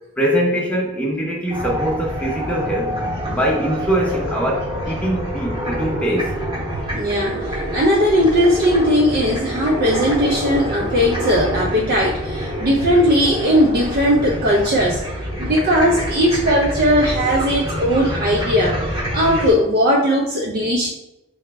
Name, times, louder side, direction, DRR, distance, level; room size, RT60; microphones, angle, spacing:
voice 1, 0.2-2.9 3.3-6.3, right 1 dB, 5° left, -2 dB, 0.6 m, -22 dB
sound 1, 1.5-19.5, equal, 25° right, 0.9 m, -26 dB
voice 2, 6.7-15.0 15.4-20.9, equal, 45° right, -2 dB, 0.4 m, -18 dB
3.8 x 2.0 x 3.3 m, 0.89 s
head